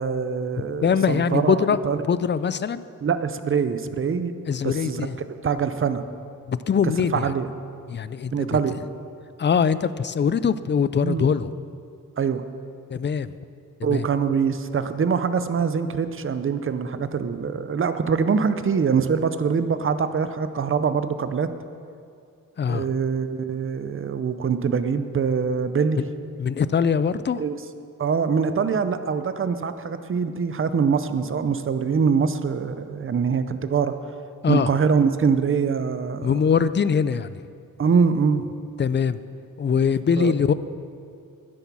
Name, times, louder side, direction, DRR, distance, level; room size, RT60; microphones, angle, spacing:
voice 1, 0.0-2.0 3.0-4.3 4.6-6.0 7.1-7.5 8.3-8.8 11.0-11.3 12.2-12.4 13.8-21.5 22.7-26.0 27.4-27.6 28.0-34.0 34.5-36.4 37.8-38.5 40.2-40.3, right 6 dB, 40° right, 11 dB, 0.6 m, -24 dB
voice 2, 0.8-1.8 2.1-2.8 4.5-5.2 6.5-7.3 7.9-8.6 9.4-11.5 12.9-13.3 13.8-14.1 22.6-22.9 26.4-27.4 34.4-34.7 36.2-37.4 38.8-39.2 39.6-40.5, left 6 dB, 35° left, 15 dB, 0.4 m, -22 dB
10.5 x 9.9 x 6.1 m, 2.4 s
wide cardioid pair, 110°, 34 cm